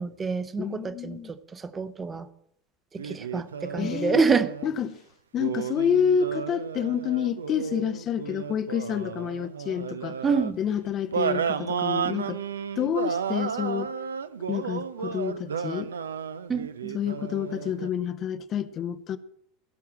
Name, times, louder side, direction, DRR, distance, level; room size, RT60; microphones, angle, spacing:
voice 1, 0.0-2.3 2.9-4.5 10.2-10.6 16.5-17.0, right 5 dB, 20° right, 0.8 m, -27 dB
voice 2, 0.6-1.3 3.8-4.3 4.6-5.0 5.3-10.2 10.6-12.4 12.8-13.9 14.5-15.9 16.9-19.2, left 8 dB, 35° left, 0.7 m, -28 dB
sound 1, 3.0-4.7 5.3-10.5 11.1-17.9, right 7 dB, 70° right, 0.6 m, -33 dB
15.0 x 5.9 x 7.5 m
figure-of-eight pair, 80°, 0 cm